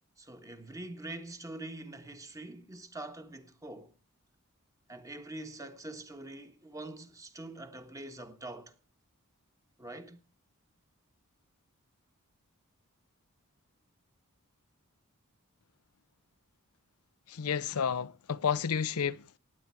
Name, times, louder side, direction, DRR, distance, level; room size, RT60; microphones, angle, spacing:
voice 1, 0.2-3.9 4.9-8.8 9.8-10.2, right 2 dB, 15° right, 1.3 m, -44 dB
voice 2, 17.3-19.4, left 7 dB, 85° left, 0.6 m, -31 dB
16.0 x 9.5 x 4.5 m
head